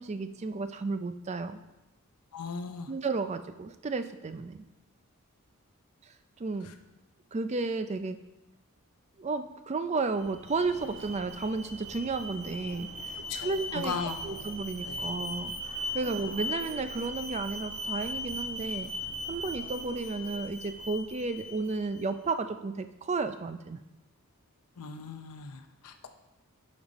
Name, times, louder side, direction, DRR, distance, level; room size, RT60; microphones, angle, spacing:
voice 1, 0.0-1.6 2.9-4.7 6.4-6.7 7.3-8.2 9.2-12.9 13.4-13.9 14.2-15.5 15.9-18.9 19.3-23.8, right 3 dB, 30° right, 10 dB, 0.4 m, -33 dB
voice 2, 2.3-2.9 6.7-6.8 13.3-14.4 14.8-15.1 16.0-16.1 24.8-26.1, left 5 dB, 85° left, 7 dB, 0.6 m, -38 dB
Alarm, 10.0-22.1, left 1 dB, 55° right, 1.1 m, -39 dB
10.0 x 5.3 x 4.1 m, 1.0 s
head